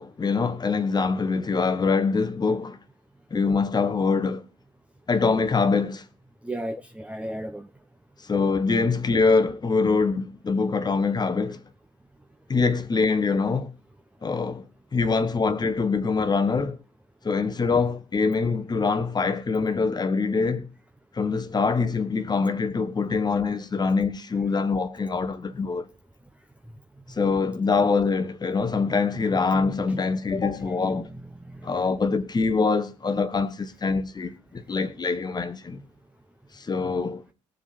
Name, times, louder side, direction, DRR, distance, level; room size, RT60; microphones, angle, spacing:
voice 1, 0.0-2.8 3.3-4.4 5.1-6.0 8.3-11.6 12.5-13.7 14.2-14.6 14.9-16.8 17.2-20.7 21.1-25.9 27.1-31.1 31.6-35.8 36.6-37.2, left 4 dB, 25° left, 1.2 m, -24 dB
voice 2, 6.4-7.7 27.1-27.2 29.6-29.7 30.3-30.5 30.7-31.8, right 1 dB, 5° right, 0.9 m, -36 dB
19.5 x 7.3 x 4.3 m
figure-of-eight pair, 55°, 17 cm